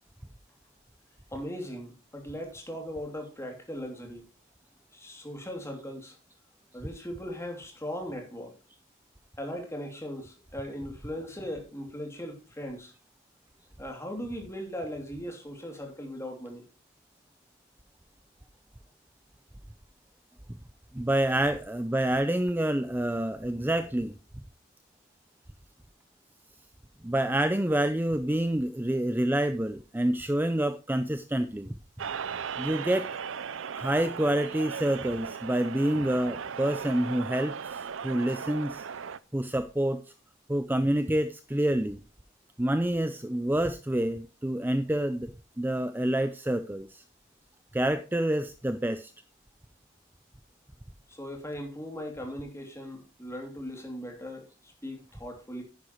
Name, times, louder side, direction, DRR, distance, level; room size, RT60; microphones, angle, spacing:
voice 1, 1.3-4.3 4.9-6.2 6.7-8.5 9.4-12.9 13.8-16.6 51.1-55.6, equal, 15° left, 2.7 m, -38 dB
voice 2, 20.9-24.1 27.0-31.7 32.6-33.1 33.7-38.9 39.3-40.0 40.5-42.0 42.6-45.3 45.6-47.0 47.7-49.1, right 1 dB, 10° right, 0.5 m, -27 dB
sound 1, 32.0-39.2, right 7 dB, 70° right, 0.5 m, -37 dB
10.5 x 9.8 x 3.0 m
head